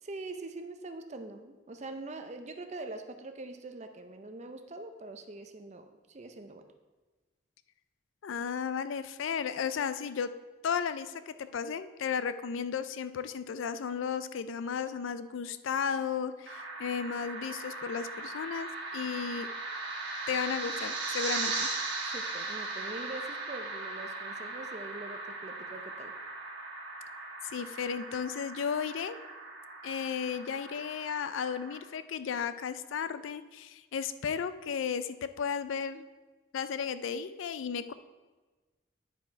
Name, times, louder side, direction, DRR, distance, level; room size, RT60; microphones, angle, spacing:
voice 1, 0.0-6.7 22.0-26.1, right 2 dB, 35° right, 7 dB, 0.5 m, -43 dB
voice 2, 8.2-10.3 10.6-19.5 20.3-21.7 27.4-29.2 29.8-36.1 36.5-37.9, left 7 dB, 80° left, 13 dB, 0.4 m, -34 dB
sound 1, 16.5-31.8, right 3 dB, 55° right, 1.3 m, -38 dB
9.6 x 4.9 x 4.6 m, 1.3 s
head